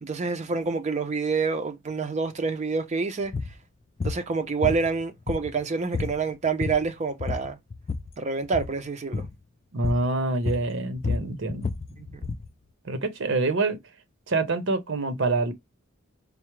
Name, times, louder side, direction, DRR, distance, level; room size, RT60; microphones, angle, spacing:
voice 1, 0.0-3.3 4.0-7.6 8.2-9.3 12.0-12.3, right 4 dB, 35° right, 0.5 m, -27 dB
sound 1, 3.3-3.5 4.0-4.2 4.6-5.6 5.9-6.2 6.5-6.9 7.2-8.1 8.5-8.8 9.1-9.4 9.8-10.1 10.5-12.5, left 4 dB, 30° left, 0.3 m, -30 dB
voice 2, 9.7-11.7 12.8-13.8 14.3-15.5, right 3 dB, 65° right, 0.7 m, -26 dB
4.6 x 2.0 x 3.0 m
head